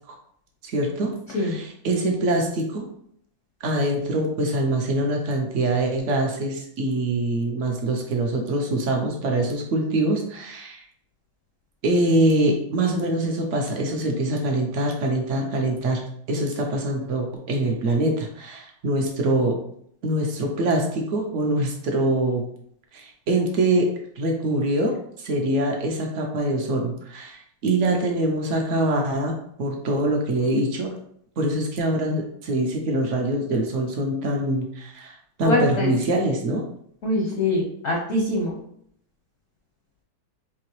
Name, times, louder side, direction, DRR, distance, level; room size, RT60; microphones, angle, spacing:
voice 1, 0.6-2.9 3.6-10.8 11.8-19.6 20.0-22.4 22.9-23.9 24.2-30.9 31.4-36.7, right 1 dB, 80° right, 1 dB, 0.6 m, -24 dB
voice 2, 35.4-35.9 37.0-38.6, left 1 dB, 65° left, -1 dB, 0.7 m, -23 dB
4.7 x 2.9 x 3.0 m, 0.68 s
omnidirectional pair, 2.0 m